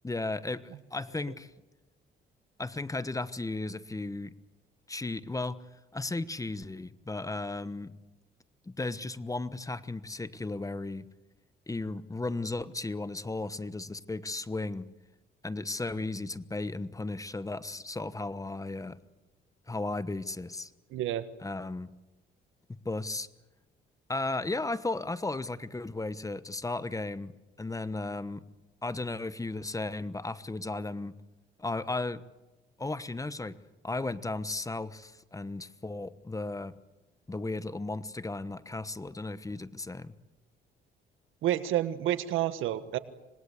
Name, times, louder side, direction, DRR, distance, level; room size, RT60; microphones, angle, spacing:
voice 1, 0.0-1.5 2.6-4.3 4.9-5.6 5.9-7.9 8.6-11.1 11.7-14.9 15.4-19.0 19.7-20.7 21.4-21.9 22.8-23.3 24.1-27.3 27.6-28.4 28.8-31.1 31.6-32.2 32.8-33.6 33.8-36.7 37.3-40.1, left 2 dB, 15° left, 14 dB, 1.1 m, -35 dB
voice 2, 20.9-21.2 41.4-43.0, right 12 dB, 85° right, 12 dB, 1.6 m, -29 dB
26.5 x 21.0 x 8.3 m, 1.1 s
cardioid pair, 90°, 20 cm